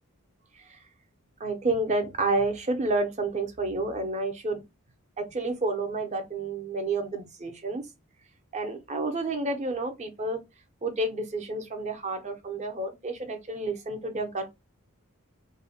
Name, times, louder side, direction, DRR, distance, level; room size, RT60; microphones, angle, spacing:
voice 1, 1.4-4.6 5.2-7.8 8.5-10.4 10.8-14.6, right 2 dB, 30° right, 0.6 m, -30 dB
2.6 x 2.1 x 2.7 m
head